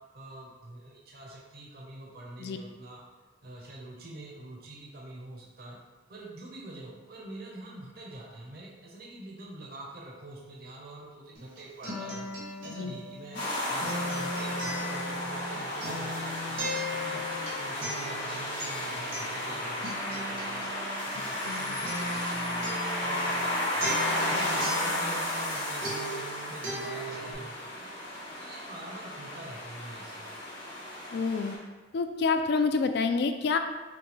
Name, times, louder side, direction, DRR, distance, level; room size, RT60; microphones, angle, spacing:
voice 1, 0.1-3.0 3.4-5.8 6.1-12.3 12.6-13.4 13.7-17.2 17.6-20.7 21.0-23.9 24.3-28.0 28.4-30.3, right 1 dB, 50° right, -3 dB, 0.7 m, -45 dB
Acoustic guitar, 11.3-25.6 25.8-27.3, equal, 85° right, 1.4 m, -38 dB
sound 1, 13.3-31.5, left 1 dB, 75° left, 1.4 m, -33 dB
voice 2, 31.1-31.6 31.9-33.6, left 4 dB, 55° left, 7 dB, 0.3 m, -28 dB
5.9 x 2.2 x 3.1 m, 1.2 s
head